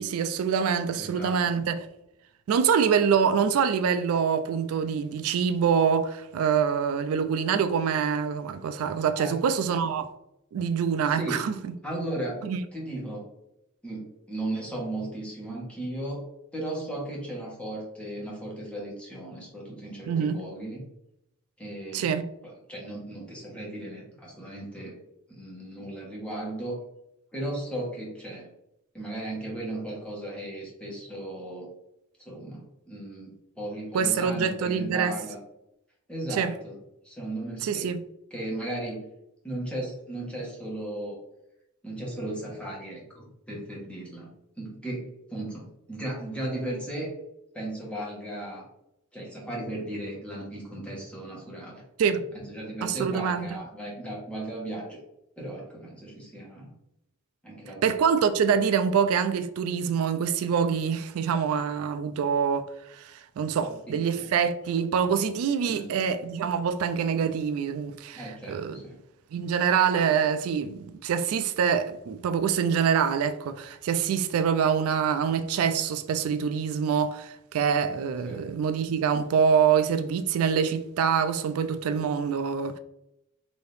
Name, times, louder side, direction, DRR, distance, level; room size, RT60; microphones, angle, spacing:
voice 1, 0.0-1.9 2.5-10.1 10.5-11.7 12.4-12.6 20.1-20.4 21.9-22.2 33.9-35.2 36.3-36.5 37.6-38.0 52.0-52.2 52.8-53.6 57.8-68.8 69.3-82.8, right 7 dB, 75° right, 0.3 m, -25 dB
voice 2, 0.9-1.4 9.2-9.4 11.1-11.5 11.8-13.3 13.8-16.2 16.5-20.8 21.6-22.2 22.4-25.0 25.3-26.8 27.3-28.5 28.9-31.7 32.2-35.4 36.1-36.8 37.0-38.0 38.3-39.1 39.4-41.2 41.8-44.3 44.6-47.1 47.5-48.6 49.1-51.8 52.3-55.0 55.4-56.7 57.4-57.9 63.6-64.3 65.6-65.9 68.1-69.0 78.2-78.5, right 1 dB, 5° left, 1.2 m, -36 dB
4.1 x 2.7 x 3.3 m
head